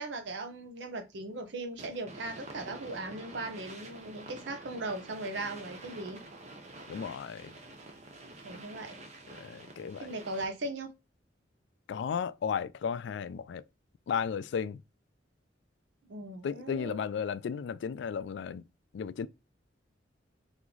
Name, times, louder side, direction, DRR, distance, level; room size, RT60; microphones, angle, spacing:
voice 1, 0.0-6.2 8.4-9.0 10.0-10.9 16.1-17.0, right 2 dB, 75° right, 0.8 m, -38 dB
sound 1, 1.8-10.7, right 2 dB, 35° right, 0.7 m, -48 dB
voice 2, 6.9-7.5 9.4-10.1 11.9-13.6 14.1-14.8 16.4-18.6 18.9-19.3, left 7 dB, 75° left, 0.3 m, -34 dB
3.5 x 3.1 x 3.8 m
head